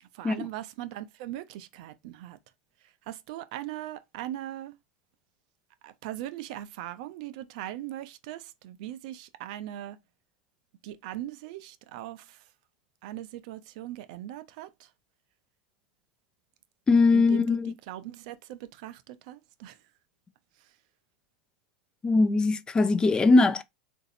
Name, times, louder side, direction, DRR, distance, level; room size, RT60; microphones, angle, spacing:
voice 1, 0.0-2.4 2.8-4.7 5.8-10.0 10.8-12.4 13.0-14.9 17.1-19.8 20.6-20.7, right 13 dB, 65° right, 0.4 m, -40 dB
voice 2, 16.9-17.7 22.0-23.6, left 3 dB, 20° left, 0.4 m, -21 dB
3.7 x 2.6 x 2.6 m
hypercardioid pair, 90°, 4 cm